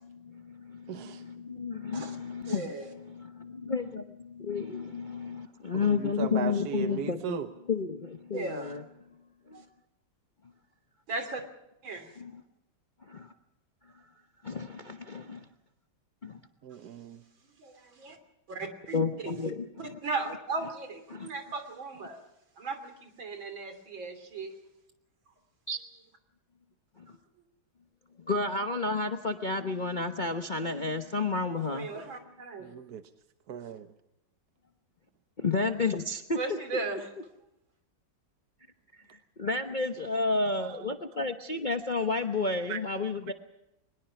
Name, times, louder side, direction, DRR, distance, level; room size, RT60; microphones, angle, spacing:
voice 1, 0.1-7.4 7.7-8.8 9.5-9.6 12.2-12.4 13.1-13.3 14.4-15.5 16.2-16.4 18.9-20.0 21.1-21.3 25.7-25.8 27.0-27.1 28.3-31.9 35.4-36.4 39.1-43.3, left 4 dB, 35° left, 6 dB, 0.9 m, -31 dB
voice 2, 0.9-1.2 5.7-7.5 16.6-17.2 32.6-33.0 33.5-33.9 40.6-40.9 42.7-42.8, right 8 dB, 60° right, 9 dB, 1.3 m, -36 dB
voice 3, 2.5-2.9 8.3-8.7 9.5-9.6 11.1-11.4 11.8-12.1 17.6-18.2 18.5-19.0 19.4-19.5 19.8-22.2 22.6-24.5 27.1-27.2 31.7-32.7 36.4-37.1, right 3 dB, 80° right, 7 dB, 3.8 m, -37 dB
22.5 x 21.0 x 5.9 m, 0.86 s
omnidirectional pair, 2.1 m